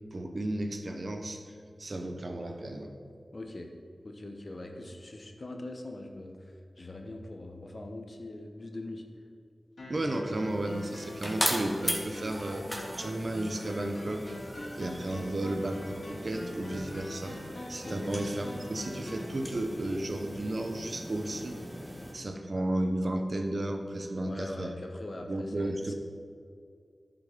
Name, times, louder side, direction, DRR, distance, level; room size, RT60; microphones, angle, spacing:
voice 1, 0.1-2.9 9.9-12.7 13.0-14.3 14.8-17.4 17.7-21.6 22.1-24.7 25.3-25.9, right 1 dB, 55° right, 5 dB, 1.0 m, -33 dB
voice 2, 3.3-3.7 4.0-6.3 6.8-9.0 17.8-18.2 24.2-25.9, left 2 dB, 55° left, 4 dB, 1.2 m, -42 dB
sound 1, 9.8-19.4, left 1 dB, 75° left, 2.5 m, -43 dB
sound 2, 10.5-22.1, equal, ahead, 1.9 m, -39 dB
10.5 x 6.0 x 5.2 m, 2.3 s
cardioid pair, 40°, 0 cm